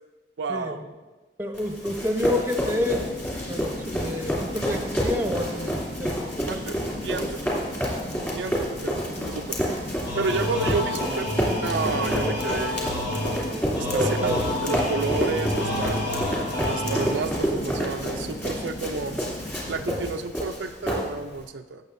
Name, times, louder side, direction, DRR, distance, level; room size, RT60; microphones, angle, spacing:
voice 1, 0.4-0.8 6.5-7.4 8.3-9.6 10.1-11.3 11.6-13.0 13.8-16.1 16.6-19.3 19.7-21.8, right 4 dB, 70° right, 7 dB, 0.4 m, -31 dB
voice 2, 1.4-3.0 3.5-6.4 13.8-14.4, left 1 dB, 15° right, 4 dB, 0.9 m, -29 dB
Run, 1.5-21.4, equal, 15° left, 2.6 m, -29 dB
sound 1, 2.6-20.0, equal, 65° left, 1.5 m, -37 dB
sound 2, 10.1-17.4, left 1 dB, 90° left, 2.8 m, -29 dB
16.0 x 7.4 x 2.6 m, 1.2 s
head